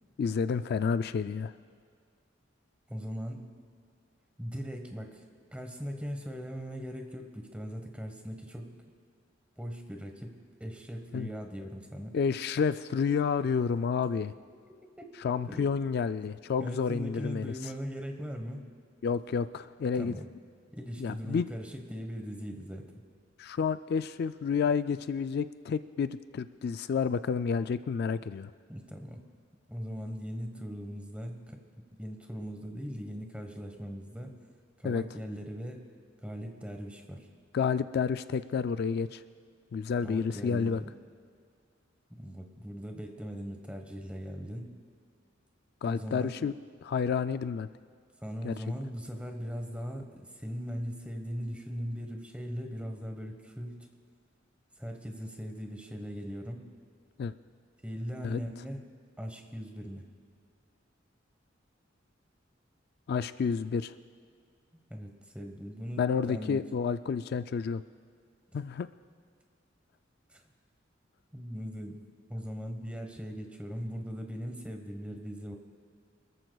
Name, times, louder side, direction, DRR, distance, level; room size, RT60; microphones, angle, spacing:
voice 1, 0.2-1.5 11.1-11.3 12.1-14.3 15.2-17.7 19.0-20.1 21.0-21.5 23.4-28.5 34.8-35.0 37.5-39.2 39.7-40.8 45.8-46.5 46.8-47.7 48.4-48.5 57.2-57.3 58.2-58.4 63.1-63.9 66.0-67.8 68.5-68.9, left 6 dB, 55° left, 12 dB, 0.3 m, -30 dB
voice 2, 2.9-3.4 4.4-5.2 5.5-8.7 9.6-12.1 15.0-15.1 15.5-15.7 16.6-18.6 19.9-20.3 20.7-22.9 28.7-29.2 29.7-31.6 31.9-34.3 34.8-35.8 36.2-37.3 40.0-40.9 42.1-44.7 45.9-46.4 48.2-53.9 54.8-56.7 57.8-58.8 59.2-60.1 64.9-66.6 70.3-70.4 71.3-72.0 72.3-75.6, equal, 5° right, 4 dB, 1.2 m, -39 dB
26.5 x 14.0 x 2.3 m, 2.1 s
head